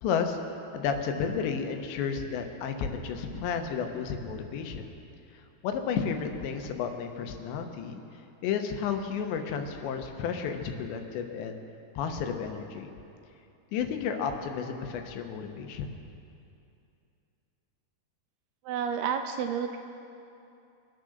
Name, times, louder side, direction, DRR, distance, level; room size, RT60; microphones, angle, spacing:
voice 1, 0.0-0.4 0.7-4.9 5.3-8.0 8.4-11.6 12.0-12.9 13.7-16.0, left 6 dB, 90° left, 5 dB, 3.3 m, -32 dB
voice 2, 18.7-19.8, right 7 dB, 85° right, 6 dB, 2.5 m, -30 dB
24.0 x 8.5 x 6.5 m, 2.7 s
omnidirectional pair, 4.9 m